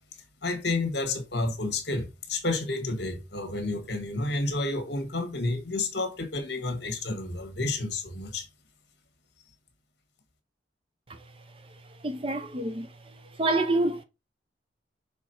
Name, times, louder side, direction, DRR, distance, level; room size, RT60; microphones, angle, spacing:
voice 1, 0.4-8.5, left 2 dB, 60° left, 1.6 m, -30 dB
voice 2, 12.0-12.9 13.4-14.0, right 2 dB, 30° right, 0.6 m, -26 dB
6.2 x 3.6 x 4.4 m
head